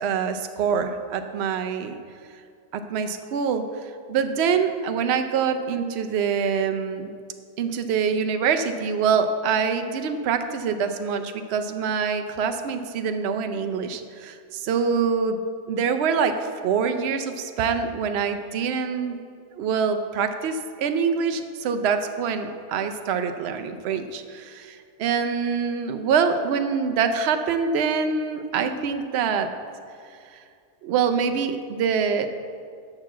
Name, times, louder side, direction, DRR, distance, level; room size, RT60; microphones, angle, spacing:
voice 1, 0.0-2.0 2.7-7.2 7.6-15.4 15.7-19.2 19.6-29.5 30.3-30.4 30.8-32.3, right 6 dB, 80° right, 7 dB, 0.5 m, -25 dB
6.7 x 5.8 x 7.2 m, 2.2 s
omnidirectional pair, 1.7 m